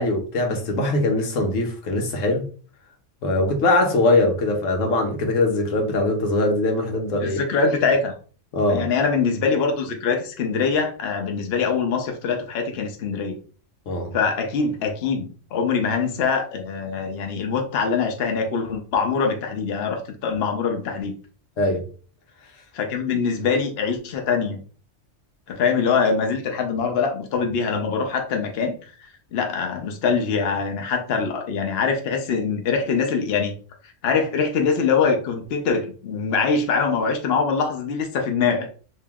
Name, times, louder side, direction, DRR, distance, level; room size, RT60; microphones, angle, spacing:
voice 1, 0.0-2.5 3.2-7.4 8.5-8.9 13.9-14.1 21.6-21.8, left 2 dB, 85° left, 1.2 m, -21 dB
voice 2, 7.2-8.1 8.7-13.4 14.1-21.1 22.7-24.6 25.5-33.6 34.0-38.7, left 5 dB, 60° left, 0.9 m, -23 dB
2.9 x 2.9 x 3.5 m
omnidirectional pair, 1.3 m